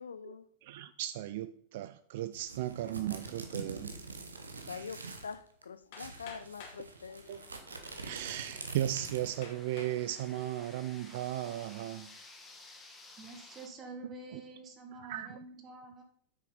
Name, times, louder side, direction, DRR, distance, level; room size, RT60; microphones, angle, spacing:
voice 1, 0.0-0.5 4.7-7.7, left 6 dB, 70° left, 0.4 m, -45 dB
voice 2, 0.6-3.9 7.3-7.4 8.0-12.1 14.3-14.4 15.0-15.3, right 13 dB, 55° right, 0.3 m, -36 dB
sound 1, 2.3-5.3 5.6-5.7 5.9-9.5, right 3 dB, 75° right, 1.0 m, -45 dB
Hammer, 5.9-6.9 7.8-7.9 8.5-8.6 9.4-10.0 10.6-11.0, left 5 dB, 50° left, 2.1 m, -50 dB
sound 2, 7.2-13.7, left 2 dB, 10° left, 1.6 m, -55 dB
voice 3, 13.2-16.0, right 3 dB, 25° right, 1.7 m, -47 dB
8.3 x 6.5 x 4.1 m
figure-of-eight pair, 90°, 0 cm